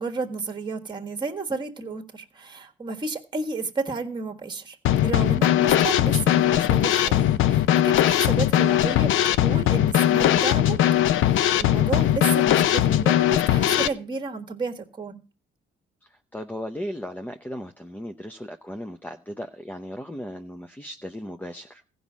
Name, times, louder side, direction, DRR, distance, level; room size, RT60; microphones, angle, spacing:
voice 1, 0.0-4.8 5.0-15.2, right 3 dB, 20° right, 1.5 m, -32 dB
Drum kit / Snare drum, 4.8-13.9, left 12 dB, 85° left, 0.6 m, -20 dB
voice 2, 16.0-21.8, equal, 10° left, 0.7 m, -36 dB
15.0 x 5.4 x 7.2 m
cardioid pair, 90°, 20 cm